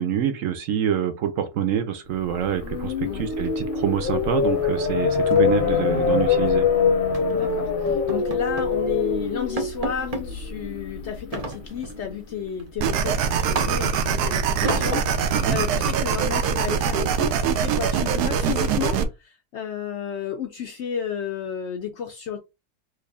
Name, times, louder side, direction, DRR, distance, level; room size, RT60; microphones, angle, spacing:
voice 1, 0.0-6.7 15.3-15.6, right 9 dB, 70° right, 0.9 m, -26 dB
sound 1, 2.3-12.4, left 6 dB, 45° left, 0.9 m, -24 dB
sound 2, 2.4-3.2 3.5-3.7 4.0-4.3 4.5-4.6 5.0-6.6 7.1-7.4 7.9-8.8 9.1-9.2 9.6-10.3 11.3-12.0 12.5-14.1 14.6-15.4, right 2 dB, 40° right, 0.5 m, -33 dB
voice 2, 7.3-22.4, left 8 dB, 70° left, 0.6 m, -32 dB
sound 3, 12.8-19.0, right 6 dB, 90° right, 1.1 m, -23 dB
3.3 x 2.5 x 3.5 m
omnidirectional pair, 1.6 m